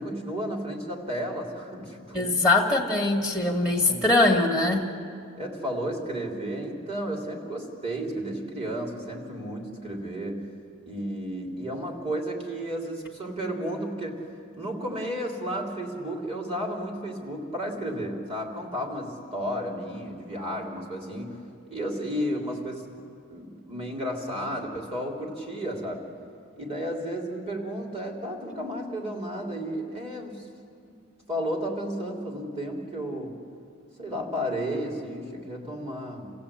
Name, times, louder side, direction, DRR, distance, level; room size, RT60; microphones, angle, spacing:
voice 1, 0.0-2.3 3.7-4.1 5.4-10.5 10.9-14.2 14.5-23.0 23.3-26.0 26.6-30.5 31.3-33.4 34.0-36.3, equal, 30° right, 0 dB, 3.6 m, -33 dB
voice 2, 2.1-4.8, left 2 dB, 5° right, -1 dB, 1.7 m, -22 dB
28.5 x 16.0 x 8.6 m, 2.4 s
head